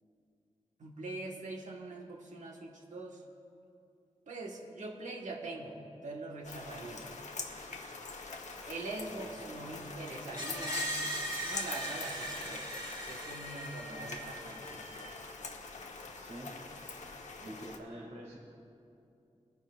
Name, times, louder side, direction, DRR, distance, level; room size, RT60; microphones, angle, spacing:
voice 1, 0.8-3.2 4.3-7.0 8.6-11.0 11.4-12.7 13.0-15.1, right 2 dB, 85° right, -1 dB, 1.4 m, -43 dB
sound 1, 6.4-17.8, left 4 dB, 80° left, 0.9 m, -45 dB
voice 2, 9.1-9.7 16.0-16.6 17.4-18.4, right 1 dB, 65° right, -2 dB, 2.0 m, -47 dB
Screech, 10.4-15.3, right 1 dB, 35° right, 3.1 m, -39 dB
20.5 x 10.5 x 2.4 m, 2.6 s
wide cardioid pair, 85°, 12 cm